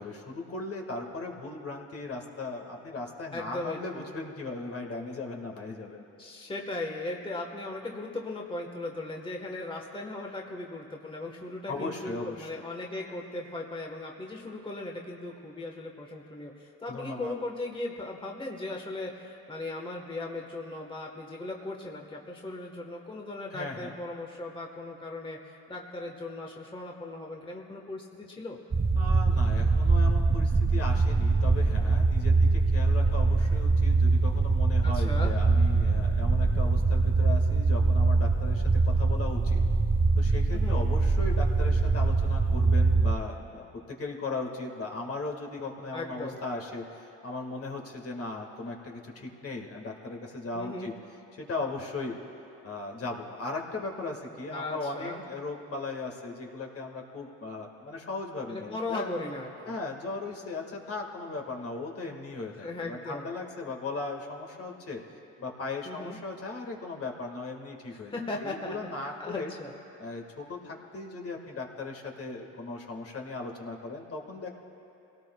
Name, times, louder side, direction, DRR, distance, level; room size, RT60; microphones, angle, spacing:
voice 1, 0.0-6.1 11.7-12.5 16.9-17.3 23.5-23.9 29.0-39.6 40.2-50.9 51.3-52.2 52.6-59.1 59.7-65.0 65.4-69.5 70.0-74.5, left 3 dB, 50° left, 1 dB, 1.8 m, -37 dB
voice 2, 3.3-4.0 6.2-28.6 34.8-35.4 40.5-40.8 45.9-46.4 50.5-50.9 54.5-55.2 58.5-59.7 62.6-63.3 65.8-66.2 67.9-68.8 69.2-69.7, left 2 dB, 15° left, 1 dB, 1.3 m, -38 dB
sound 1, 28.7-43.2, right 3 dB, 20° right, 0.4 m, -23 dB
24.5 x 17.5 x 2.3 m, 2.7 s
cardioid pair, 90°, 30 cm